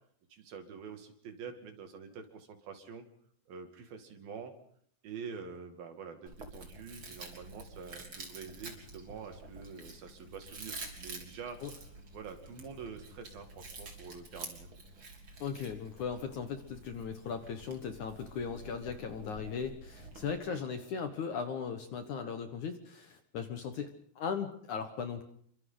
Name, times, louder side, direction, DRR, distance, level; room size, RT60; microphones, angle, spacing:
voice 1, 0.3-3.0 3.5-4.5 5.0-11.6 12.1-14.7 20.4-20.6, right 6 dB, 65° right, 6 dB, 4.0 m, -46 dB
Chewing mastication, 6.3-20.3, right 3 dB, 30° right, 4.1 m, -49 dB
voice 2, 15.4-25.2, left 6 dB, 60° left, 7 dB, 2.3 m, -38 dB
28.5 x 24.5 x 4.0 m, 0.62 s
omnidirectional pair, 4.7 m